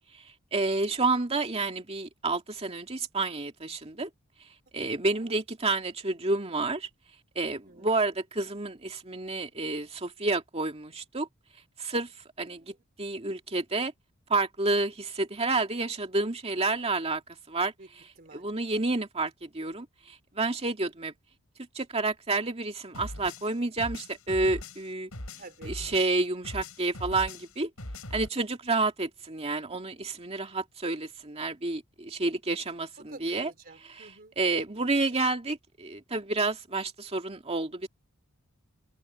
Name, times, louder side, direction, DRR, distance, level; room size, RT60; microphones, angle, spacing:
voice 1, 0.5-4.1 4.7-6.9 7.4-11.3 11.8-12.1 12.4-13.9 14.3-17.2 17.5-17.7 18.3-21.1 21.7-25.1 25.7-27.7 28.1-33.5 34.4-37.9, right 3 dB, 30° right, 2.4 m, -29 dB
voice 2, 4.8-5.3 7.4-8.1 12.4-12.8 17.8-17.9 18.2-18.5 25.3-25.8 33.0-35.2, right 2 dB, 45° right, 3.8 m, -51 dB
sound 1, 22.9-26.2 26.4-28.3, left 1 dB, 85° left, 5.7 m, -40 dB
head